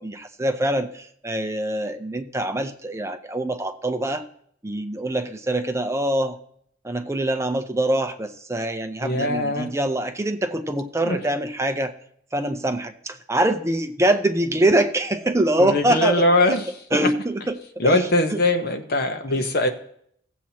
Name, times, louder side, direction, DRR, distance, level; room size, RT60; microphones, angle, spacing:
voice 1, 0.0-4.2 4.6-6.4 6.8-11.9 12.3-16.6 16.9-18.4 19.3-19.5, right 1 dB, 15° right, 7 dB, 0.5 m, -24 dB
voice 2, 9.0-9.7 11.0-11.2 15.6-16.6 17.8-19.7, left 1 dB, 55° left, 6 dB, 0.9 m, -21 dB
17.0 x 7.4 x 2.9 m, 0.68 s
head